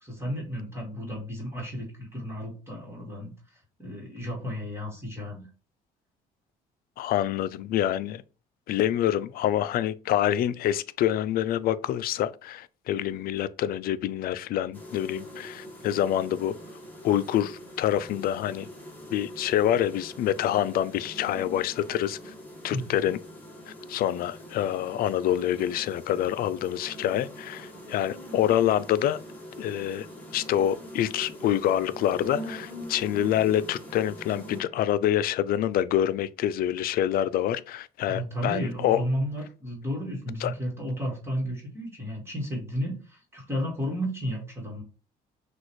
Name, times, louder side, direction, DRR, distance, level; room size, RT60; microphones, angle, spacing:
voice 1, 0.0-5.5 22.7-23.0 38.1-44.8, equal, 15° right, 1.8 m, -33 dB
voice 2, 7.0-8.2 8.7-16.5 17.0-18.7 19.1-22.3 22.6-23.2 23.7-29.2 29.6-30.1 30.3-39.0 40.4-40.5, left 11 dB, 60° left, 0.4 m, -26 dB
sound 1, 14.7-34.6, equal, 10° left, 1.4 m, -43 dB
6.1 x 2.5 x 3.1 m
cardioid pair, 110°, 17 cm